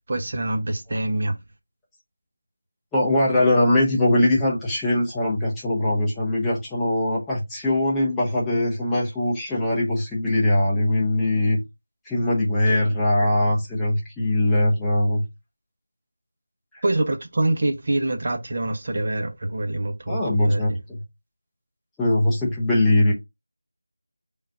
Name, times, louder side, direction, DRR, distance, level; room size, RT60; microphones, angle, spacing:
voice 1, 0.1-1.3 12.7-12.8 16.8-20.2 20.4-20.8, right 2 dB, 40° right, 0.8 m, -25 dB
voice 2, 2.9-11.6 12.1-15.2 16.7-16.8 20.1-20.7 22.0-23.1, left 1 dB, 5° left, 0.7 m, -21 dB
3.7 x 2.4 x 4.4 m
figure-of-eight pair, 170°, 0 cm